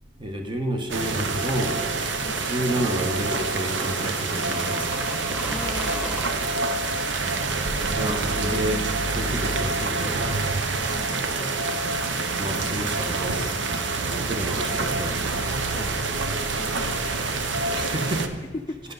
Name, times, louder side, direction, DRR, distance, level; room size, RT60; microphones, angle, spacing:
voice 1, 0.2-1.8 2.4-5.0 7.9-8.9 9.1-10.4 12.4-13.5 14.2-15.2 17.7-18.4, right 1 dB, 25° right, 4 dB, 1.2 m, -29 dB
sound 1, 0.9-18.3, right 3 dB, 75° right, 0.8 m, -27 dB
sound 2, 3.3-6.3, equal, 5° right, 1.3 m, -38 dB
voice 2, 5.5-6.6 10.9-11.8 13.8-14.2 15.7-16.0 16.6-17.0 18.7-18.8, left 2 dB, 20° left, 1 dB, 0.4 m, -40 dB
11.5 x 9.6 x 4.0 m, 1.5 s
head